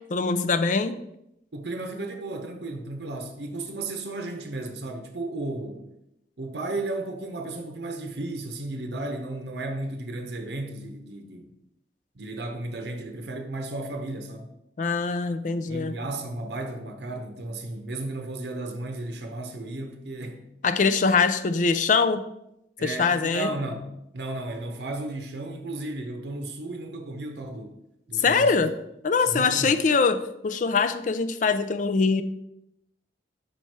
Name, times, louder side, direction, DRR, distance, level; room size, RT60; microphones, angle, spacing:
voice 1, 0.1-1.0 14.8-15.9 20.6-22.2 22.8-23.5 28.1-28.7 29.0-32.2, left 4 dB, 45° left, 0.4 m, -23 dB
voice 2, 1.5-5.8 6.4-11.5 12.1-14.5 15.4-20.4 22.8-23.9 24.1-27.8 28.1-28.7 29.2-29.8, right 2 dB, 70° right, 0.8 m, -34 dB
5.5 x 4.3 x 4.6 m
head